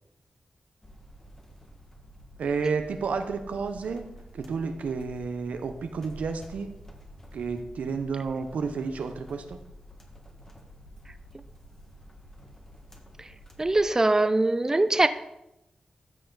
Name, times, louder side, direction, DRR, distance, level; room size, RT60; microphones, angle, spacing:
sound 1, 0.8-13.8, equal, 20° left, 1.5 m, -49 dB
voice 1, 2.4-6.7 7.3-9.6, right 5 dB, 85° right, 7 dB, 0.7 m, -31 dB
voice 2, 13.6-15.1, right 2 dB, 25° right, 11 dB, 0.5 m, -22 dB
13.5 x 4.8 x 3.9 m, 0.87 s
cardioid pair, 60°, 2 cm